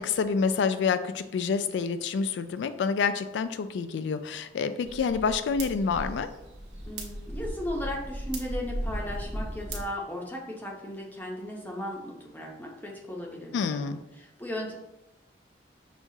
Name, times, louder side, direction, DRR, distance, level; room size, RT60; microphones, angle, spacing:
voice 1, 0.0-6.3 13.5-14.0, left 5 dB, 85° left, 11 dB, 0.3 m, -28 dB
sound 1, 4.8-9.8, right 1 dB, 80° right, 0.9 m, -36 dB
voice 2, 6.9-13.9 14.1-14.8, left 1 dB, 10° left, -1 dB, 0.6 m, -36 dB
6.1 x 2.3 x 2.7 m, 0.94 s
head